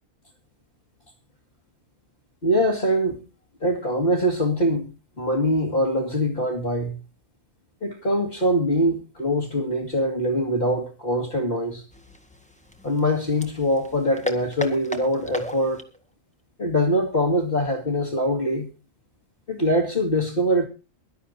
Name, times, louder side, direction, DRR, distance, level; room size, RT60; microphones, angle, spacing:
voice 1, 2.4-3.2 3.6-4.9 5.2-7.0 7.8-11.8 12.8-15.8 16.6-18.7 19.5-20.6, equal, 40° left, 2.4 m, -23 dB
sound 1, 11.9-16.0, left 1 dB, 5° left, 1.7 m, -34 dB
23.0 x 12.0 x 2.8 m
omnidirectional pair, 1.4 m